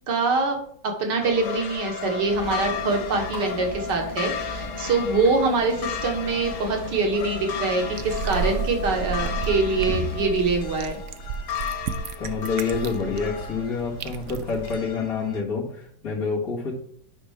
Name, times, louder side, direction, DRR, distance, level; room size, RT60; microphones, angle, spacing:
voice 1, 0.1-0.6 0.8-11.0, right 3 dB, 85° right, 2 dB, 1.9 m, -24 dB
sound 1, 1.2-15.4, left 7 dB, 80° left, 1.5 m, -35 dB
sound 2, 2.3-10.3, left 2 dB, 35° left, 4.1 m, -37 dB
sound 3, 7.9-14.8, right 5 dB, 70° right, 0.7 m, -32 dB
voice 2, 12.2-16.7, left 5 dB, 55° left, -4 dB, 2.3 m, -27 dB
9.7 x 5.4 x 3.4 m, 0.64 s
omnidirectional pair, 1.8 m